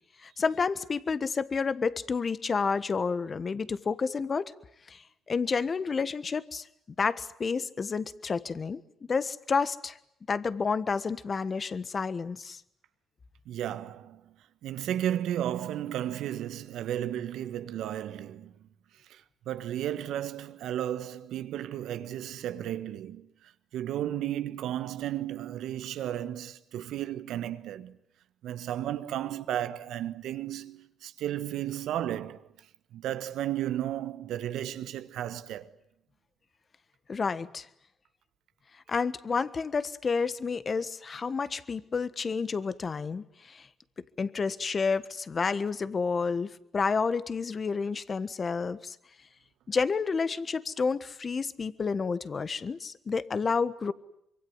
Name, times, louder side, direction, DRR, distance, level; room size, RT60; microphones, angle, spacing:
voice 1, 0.2-4.5 4.9-5.0 5.3-6.7 7.0-8.8 9.1-10.0 10.3-12.6 37.1-37.7 38.9-43.7 44.2-49.0 49.7-53.9, left 5 dB, 40° left, 1.4 m, -30 dB
voice 2, 13.4-14.3 14.6-18.7 19.1-28.0 28.4-32.5 32.9-35.7, right 11 dB, 80° right, 1.4 m, -34 dB
25.5 x 23.5 x 9.6 m
cardioid pair, 90°, 0 cm